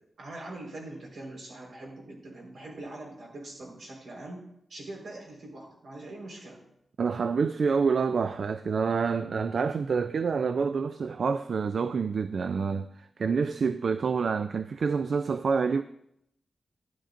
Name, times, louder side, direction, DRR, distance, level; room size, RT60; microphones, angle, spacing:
voice 1, 0.2-6.6, right 2 dB, 85° right, 4.3 m, -43 dB
voice 2, 7.0-15.8, right 5 dB, 65° right, 0.3 m, -27 dB
12.5 x 12.0 x 2.5 m
wide cardioid pair, 130°, 0 cm